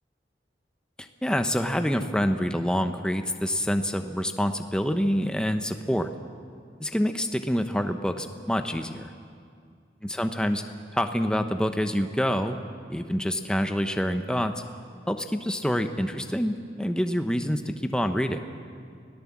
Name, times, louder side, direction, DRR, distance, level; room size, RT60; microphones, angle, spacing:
voice 1, 1.0-6.1 6.8-9.1 10.0-10.6 10.9-12.6 12.9-14.5 15.1-18.4, equal, 5° left, 7 dB, 0.9 m, -26 dB
25.5 x 17.5 x 7.4 m, 2.2 s
head